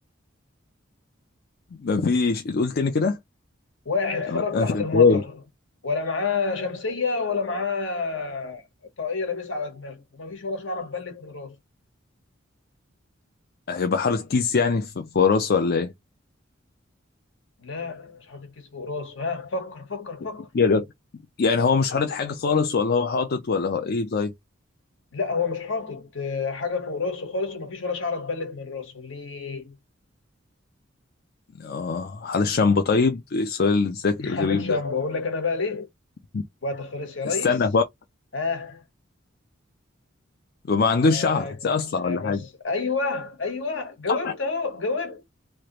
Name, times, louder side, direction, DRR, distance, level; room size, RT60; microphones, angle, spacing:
voice 1, 1.8-3.2 4.3-5.2 13.7-15.9 20.5-20.8 21.4-24.3 31.6-34.8 36.3-36.4 37.3-37.8 40.7-42.4 44.1-44.2, left 4 dB, 55° left, 0.5 m, -22 dB
voice 2, 3.8-5.4 5.8-8.6 9.0-11.5 17.6-20.5 25.1-29.7 34.2-35.9 36.6-37.6 38.3-38.8 41.0-41.7 42.0-45.2, left 4 dB, 70° left, 1.3 m, -29 dB
3.2 x 2.4 x 3.0 m
head